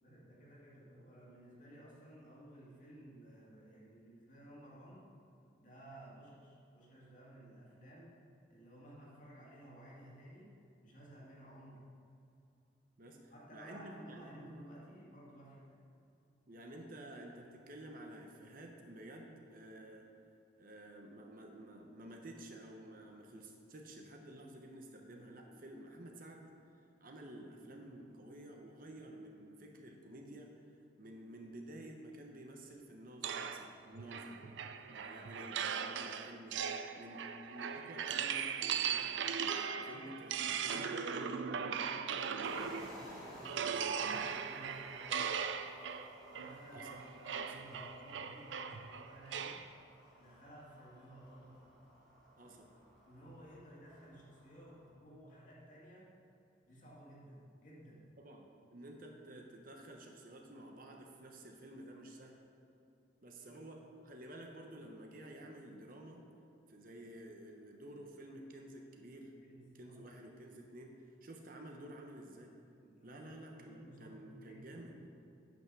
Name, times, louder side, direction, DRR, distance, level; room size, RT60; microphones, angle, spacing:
voice 1, 0.0-5.1 5.6-12.0 13.3-15.8 35.0-35.2 39.7-45.3 46.3-49.7 50.2-51.7 52.4-52.6 53.0-56.1 56.7-58.1 63.4-63.6 69.4-70.2 72.8-74.9, right 1 dB, 45° left, -5 dB, 2.1 m, -56 dB
voice 2, 13.0-14.2 16.5-20.1 20.6-26.4 27.0-30.5 31.0-34.4 34.9-36.7 37.0-39.3 39.9-41.4 46.7-46.9 47.4-47.5 52.4-52.7 58.2-62.4 63.2-66.2 66.7-69.3 69.7-71.0 71.2-72.5 73.0-75.1, right 1 dB, 45° right, 2 dB, 0.9 m, -51 dB
sound 1, 33.2-43.0 43.4-49.7, right 7 dB, 70° right, 0.4 m, -39 dB
sound 2, 42.4-54.9, equal, ahead, 2.0 m, -56 dB
9.2 x 5.8 x 6.0 m, 2.6 s
head